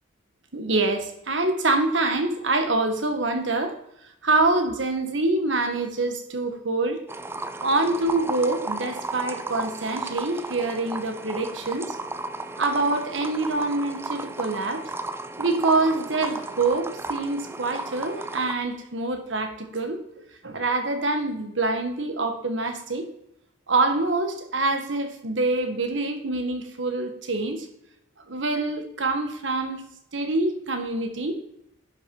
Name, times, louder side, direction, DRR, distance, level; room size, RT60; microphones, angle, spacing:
voice 1, 0.5-3.7 4.2-7.0 7.6-12.0 12.6-14.8 15.4-23.0 23.7-27.7 28.2-29.8 30.1-31.4, right 2 dB, 75° right, 6 dB, 1.5 m, -25 dB
sound 1, 7.1-18.5, right 2 dB, 10° right, 0.5 m, -34 dB
11.0 x 6.0 x 5.4 m, 0.79 s
head